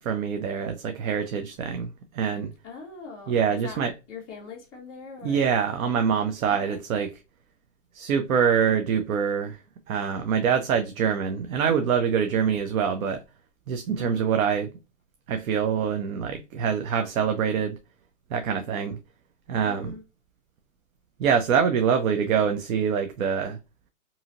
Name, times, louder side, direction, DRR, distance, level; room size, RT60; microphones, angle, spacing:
voice 1, 0.0-2.5 3.3-3.9 5.2-7.1 7.9-9.6 9.9-13.2 13.7-14.7 15.3-17.8 18.3-19.0 19.5-19.9 21.2-23.6, right 7 dB, 85° right, 0.6 m, -25 dB
voice 2, 2.6-3.8 4.1-5.4 6.5-6.8 14.0-14.3 19.6-20.0, left 5 dB, 10° right, 0.4 m, -42 dB
2.7 x 2.7 x 2.5 m
hypercardioid pair, 170°, 40 cm